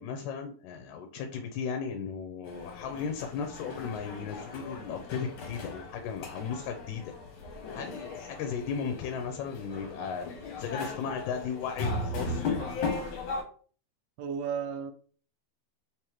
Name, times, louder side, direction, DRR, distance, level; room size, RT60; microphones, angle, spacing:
voice 1, 0.0-7.0 7.8-10.3 10.6-12.4, left 6 dB, 85° left, 4 dB, 2.0 m, -36 dB
sound 1, 2.5-13.4, left 3 dB, 60° left, 1.5 m, -37 dB
voice 2, 14.2-14.9, right 6 dB, 75° right, 5 dB, 1.5 m, -33 dB
4.8 x 3.5 x 3.0 m, 0.42 s
omnidirectional pair, 3.3 m